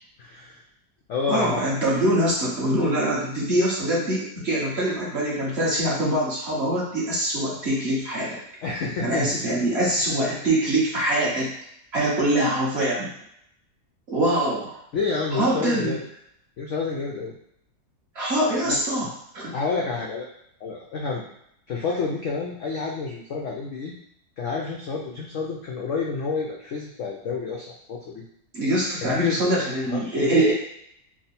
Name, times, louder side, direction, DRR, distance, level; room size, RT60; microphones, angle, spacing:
voice 1, 0.2-0.6 1.1-1.8 8.6-9.5 14.9-16.1 16.6-17.3 18.7-18.8 19.5-20.3 20.6-21.2 21.7-23.9 24.4-28.2 29.1-29.4 29.8-30.4, left 4 dB, 85° left, -2 dB, 0.6 m, -29 dB
voice 2, 1.3-8.4 9.0-11.5 11.9-13.1 14.1-14.8 15.3-15.9 18.1-19.1 19.3-19.5 28.5-30.5, right 1 dB, 45° right, -6 dB, 1.0 m, -23 dB
3.6 x 2.1 x 4.1 m, 0.72 s
omnidirectional pair, 1.9 m